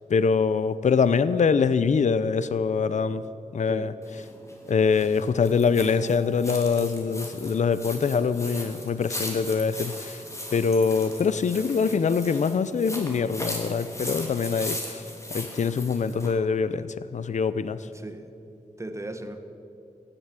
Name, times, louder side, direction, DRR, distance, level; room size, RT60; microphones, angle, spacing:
voice 1, 0.1-3.2 3.5-3.9 4.7-10.2 10.5-15.0 15.3-17.9, left 5 dB, 65° left, 14 dB, 0.6 m, -24 dB
sound 1, 4.0-16.3, left 1 dB, 20° left, 3.1 m, -38 dB
Harp, 5.8-7.7, right 2 dB, 85° left, 4.4 m, -53 dB
voice 2, 17.7-18.3 18.8-19.4, right 1 dB, 20° right, 8 dB, 1.4 m, -37 dB
15.5 x 8.9 x 9.1 m, 2.8 s
cardioid pair, 70°, 13 cm